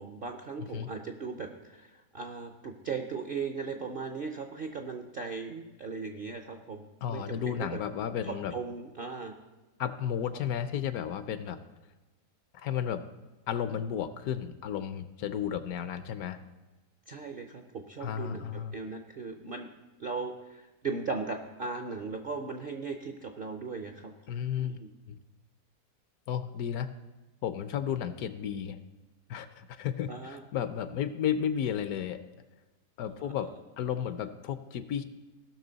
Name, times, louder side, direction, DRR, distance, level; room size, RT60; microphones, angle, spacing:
voice 1, 0.0-7.8 8.2-9.3 17.1-19.7 20.0-24.1 24.6-24.9 30.1-30.4 33.2-33.3, right 4 dB, 60° right, 4 dB, 0.5 m, -38 dB
voice 2, 0.6-0.9 7.0-8.5 9.8-11.6 12.5-13.0 13.5-16.4 18.0-18.7 24.3-24.8 25.1-25.2 26.3-26.9 27.4-28.8 29.3-32.2 33.0-35.0, left 9 dB, 75° left, 12 dB, 1.0 m, -33 dB
17.5 x 6.2 x 4.0 m, 1.1 s
omnidirectional pair, 1.7 m